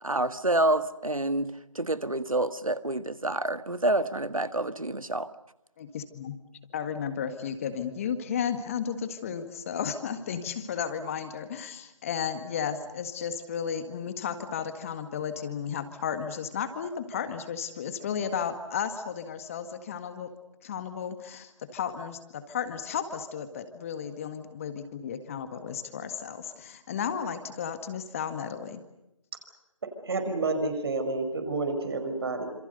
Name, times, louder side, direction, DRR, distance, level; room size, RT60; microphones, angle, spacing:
voice 1, 0.0-5.3, right 1 dB, 90° right, 12 dB, 1.7 m, -28 dB
voice 2, 5.8-6.3 6.7-20.3 20.6-28.8, left 7 dB, 25° left, 9 dB, 1.8 m, -33 dB
voice 3, 30.0-32.5, right 3 dB, 45° right, 7 dB, 5.0 m, -29 dB
28.0 x 27.0 x 6.7 m, 0.90 s
figure-of-eight pair, 155°, 17 cm